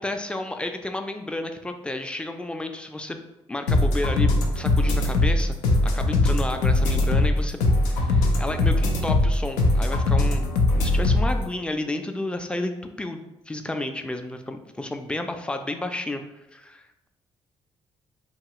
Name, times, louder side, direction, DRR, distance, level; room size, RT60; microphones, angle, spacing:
voice 1, 0.0-5.6 5.8-7.6 7.9-10.5 10.7-17.1, left 2 dB, 10° left, 6 dB, 0.4 m, -32 dB
sound 1, 3.7-11.4, left 2 dB, 85° left, 0.4 m, -21 dB
2.8 x 2.3 x 2.8 m, 0.96 s
supercardioid pair, 50°, 12 cm